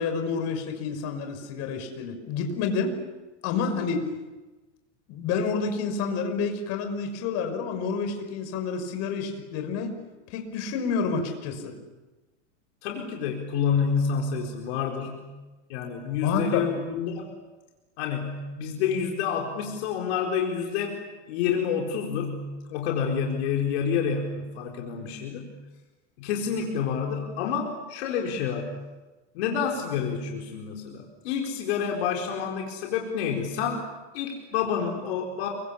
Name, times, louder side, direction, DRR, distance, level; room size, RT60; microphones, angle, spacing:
voice 1, 0.0-3.0 3.4-4.1 5.1-9.9 10.3-11.8 16.2-16.7, left 5 dB, 45° left, 6 dB, 5.8 m, -29 dB
voice 2, 12.8-15.3 15.7-17.3 18.0-21.0 21.3-25.5 26.2-28.8 29.3-33.9 34.1-35.5, left 7 dB, 65° left, 1 dB, 4.4 m, -28 dB
30.0 x 24.5 x 7.2 m, 1.2 s
supercardioid pair, 135°, 35 cm